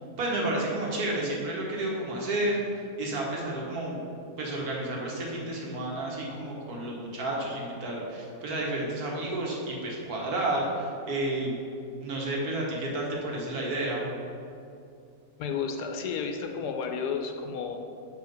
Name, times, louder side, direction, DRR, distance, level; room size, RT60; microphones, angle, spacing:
voice 1, 0.2-2.6 3.0-4.0 4.4-11.6 12.0-14.1, right 1 dB, 65° right, -2 dB, 1.8 m, -31 dB
voice 2, 15.4-17.8, left 6 dB, 80° left, 4 dB, 1.2 m, -32 dB
6.1 x 4.9 x 5.2 m, 2.5 s
omnidirectional pair, 1.8 m